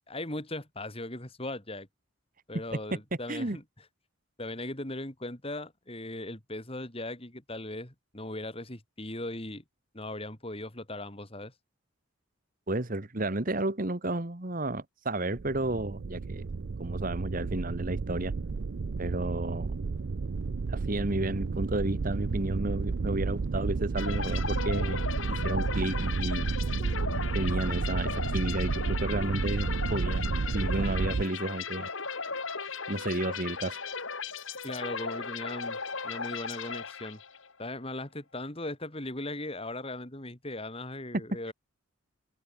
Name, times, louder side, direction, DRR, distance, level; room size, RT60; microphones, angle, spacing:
voice 1, 0.1-1.9 2.5-3.6 4.4-9.6 9.9-11.5 34.6-37.2 37.6-41.5, left 1 dB, 25° left, 3.0 m, -38 dB
voice 2, 12.7-16.4 16.8-18.3 19.0-19.7 20.7-25.0 25.3-26.6 27.3-31.9 32.9-33.8, right 1 dB, 40° right, 1.6 m, -32 dB
sound 1, 15.3-31.3, right 4 dB, 55° right, 0.5 m, -31 dB
sound 2, 24.0-37.5, left 5 dB, 65° left, 3.7 m, -37 dB
head